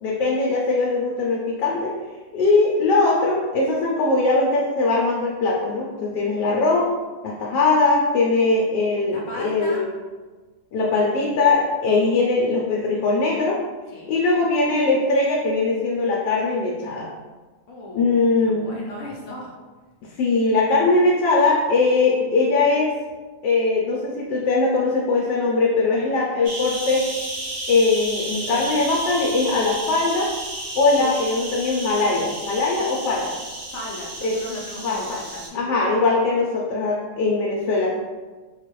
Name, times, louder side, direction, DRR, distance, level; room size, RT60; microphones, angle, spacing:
voice 1, 0.0-1.9 2.3-6.9 7.2-9.9 10.7-13.6 14.1-17.1 18.0-18.6 20.2-22.9 23.4-27.1 27.7-30.3 30.8-33.3 34.2-34.3 34.8-35.2 35.5-37.9, left 3 dB, 90° left, -3 dB, 1.2 m, -20 dB
voice 2, 9.1-9.9 13.9-14.1 17.7-19.5 30.9-31.2 33.7-35.7, left 1 dB, 65° left, -2 dB, 0.9 m, -36 dB
sound 1, 26.4-35.5, right 1 dB, 55° right, 0.8 m, -32 dB
3.6 x 2.4 x 3.0 m, 1.3 s
omnidirectional pair, 1.8 m